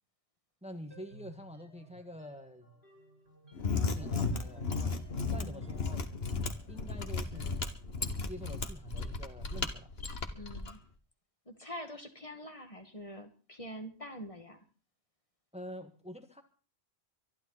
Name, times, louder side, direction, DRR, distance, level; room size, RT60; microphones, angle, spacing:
voice 1, 0.6-2.7 3.8-5.0 5.3-6.0 6.7-7.6 8.3-9.9 15.5-16.4, equal, 5° right, 6 dB, 1.7 m, -47 dB
sound 1, 0.9-7.8, right 1 dB, 80° right, 7.8 m, -59 dB
Mechanisms, 3.5-10.7, left 4 dB, 70° left, 1.8 m, -34 dB
voice 2, 5.4-5.7 10.3-10.8 11.5-14.6, equal, 30° left, 6 dB, 2.0 m, -45 dB
24.5 x 11.5 x 4.1 m, 0.37 s
omnidirectional pair, 1.1 m